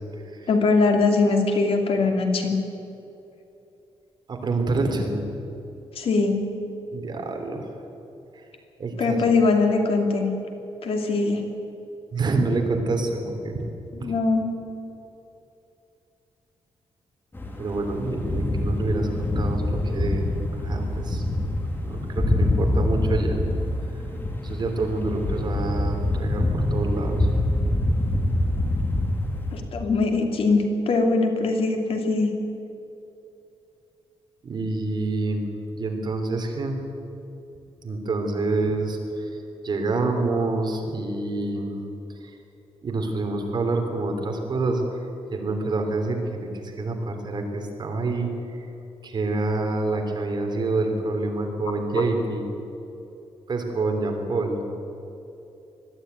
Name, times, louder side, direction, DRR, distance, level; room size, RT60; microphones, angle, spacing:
voice 1, 0.5-2.6 5.9-6.4 9.0-10.3 10.8-11.4 13.9-14.4 29.5-32.3 52.0-52.1, left 3 dB, 65° left, 3 dB, 2.7 m, -21 dB
voice 2, 4.3-5.2 6.9-7.6 8.8-9.4 12.1-13.6 14.0-14.1 17.6-20.3 20.6-21.2 21.8-23.4 24.4-27.3 34.4-35.5 35.7-36.8 37.8-39.3 39.6-41.7 42.2-42.3 42.8-44.8 45.3-48.6 49.0-52.4 53.5-54.6, right 2 dB, 45° right, 3 dB, 3.2 m, -27 dB
sound 1, 17.3-29.6, left 1 dB, 20° left, 2.7 m, -25 dB
20.5 x 13.5 x 9.4 m, 2.8 s
wide cardioid pair, 135°, 11 cm